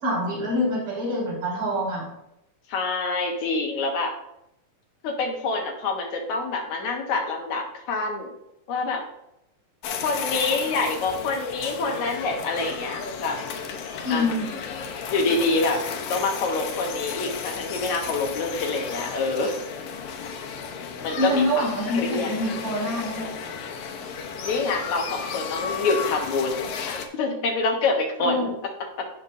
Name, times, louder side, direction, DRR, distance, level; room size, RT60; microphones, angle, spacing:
voice 1, 0.0-2.0 14.0-14.5 21.2-23.3 28.2-28.5, left 1 dB, 75° right, -9 dB, 4.9 m, -26 dB
voice 2, 2.7-4.1 5.0-8.3 8.7-9.0 10.0-13.4 14.1-14.3 15.1-15.8 16.1-19.6 21.0-21.6 21.9-22.3 24.4-28.5 29.0-29.1, left 3 dB, 65° left, 1 dB, 2.2 m, -26 dB
sound 1, 9.8-27.1, left 6 dB, 85° left, 1.3 m, -33 dB
15.0 x 5.4 x 2.6 m, 0.82 s
omnidirectional pair, 3.8 m